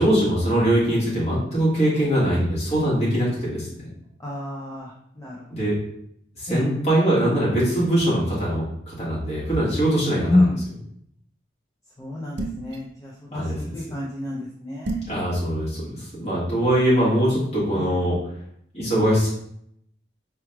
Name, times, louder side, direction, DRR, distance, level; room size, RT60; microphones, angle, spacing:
voice 1, 0.0-3.7 5.5-5.8 6.4-10.5 13.3-13.7 15.1-18.2 18.7-19.3, right 1 dB, 35° left, -7 dB, 1.5 m, -22 dB
voice 2, 4.2-5.3 6.5-6.7 10.2-10.6 12.0-15.0 17.7-18.0, left 2 dB, 20° left, -5 dB, 0.4 m, -27 dB
sound 1, 12.4-12.8 14.8-15.2, right 2 dB, 70° right, 0.5 m, -29 dB
4.6 x 3.1 x 2.2 m, 0.71 s
head